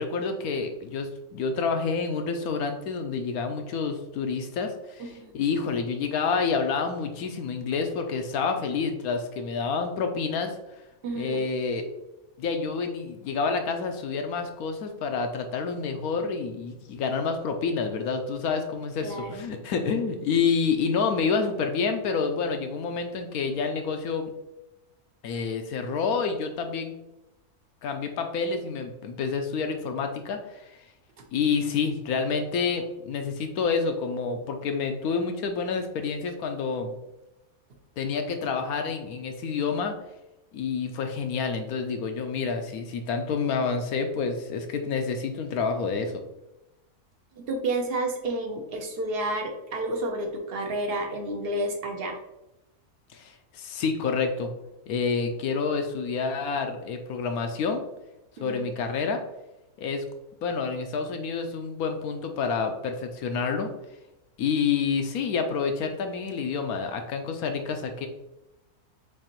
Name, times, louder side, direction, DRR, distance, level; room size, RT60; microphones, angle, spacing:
voice 1, 0.0-10.5 11.2-11.9 12.4-24.3 25.2-26.9 27.8-30.8 31.3-36.9 38.0-39.9 40.5-46.2 53.1-54.5 54.9-57.8 58.4-59.2 59.8-60.0 60.4-63.7 64.4-68.1, left 5 dB, 75° left, 6 dB, 1.0 m, -28 dB
voice 2, 5.0-5.3 11.0-11.4 19.0-19.4 31.2-31.3 47.4-52.2 58.4-58.7, right 2 dB, 55° right, 3 dB, 0.7 m, -30 dB
6.5 x 2.5 x 2.9 m, 0.93 s
omnidirectional pair, 1.6 m